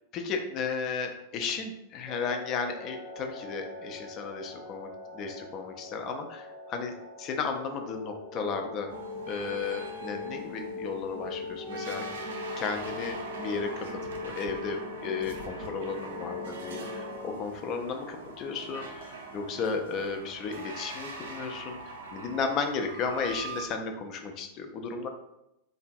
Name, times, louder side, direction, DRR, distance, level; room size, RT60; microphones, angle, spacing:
voice 1, 0.1-6.9 7.2-8.9 9.3-12.0 12.6-25.1, left 5 dB, 35° left, 5 dB, 0.4 m, -34 dB
sound 1, 2.1-17.4, left 3 dB, 5° right, 0.7 m, -41 dB
sound 2, 8.9-23.7, right 3 dB, 65° right, 0.4 m, -42 dB
2.5 x 2.2 x 2.5 m, 0.87 s
figure-of-eight pair, 90°, 0 cm